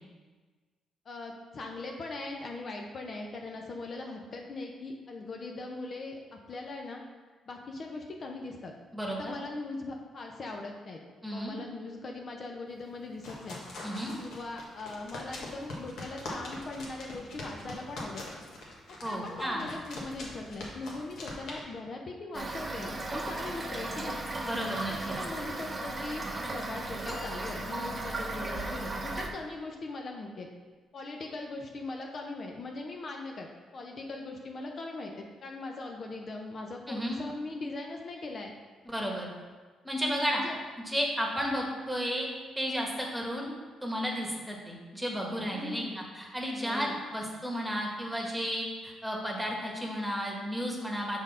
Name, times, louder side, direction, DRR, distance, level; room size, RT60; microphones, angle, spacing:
voice 1, 1.1-7.0 7.5-8.7 9.1-13.6 14.2-18.4 19.0-24.2 24.8-30.5 30.9-38.5 40.3-40.6 45.5-46.0 46.6-47.0, left 2 dB, 45° left, 1 dB, 0.7 m, -40 dB
voice 2, 8.9-9.3 11.2-11.6 13.8-14.1 19.0-19.7 24.4-25.1 36.9-37.2 38.8-39.3 39.8-40.4 40.9-42.3 42.6-43.5 43.8-51.2, equal, 5° right, -1 dB, 1.4 m, -33 dB
sound 1, 12.8-21.6, left 2 dB, 75° left, 1.5 m, -43 dB
Toilet flush / Fill (with liquid), 22.3-29.3, right 2 dB, 25° right, 0.8 m, -36 dB
sound 2, 27.0-28.7, left 2 dB, 10° left, 0.8 m, -47 dB
6.2 x 3.6 x 5.5 m, 1.4 s
cardioid pair, 90°, 0 cm